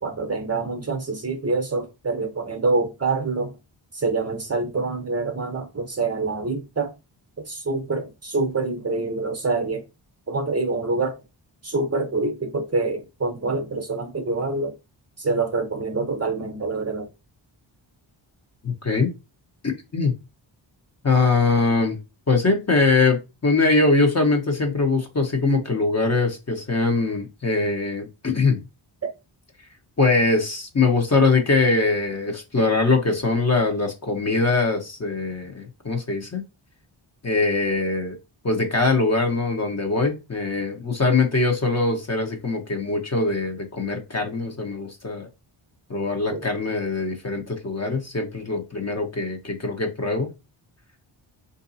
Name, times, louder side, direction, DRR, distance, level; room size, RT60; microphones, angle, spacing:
voice 1, 0.0-3.5 3.9-6.9 7.5-9.8 10.3-11.2 11.6-14.7 15.2-17.1 46.3-46.4, right 3 dB, 30° right, 0.8 m, -26 dB
voice 2, 18.6-19.1 19.6-20.2 21.0-22.0 22.3-28.6 30.0-36.4 37.2-38.1 38.4-45.3 45.9-50.3, left 3 dB, 30° left, 0.9 m, -22 dB
3.6 x 2.7 x 2.7 m
cardioid pair, 65°, 49 cm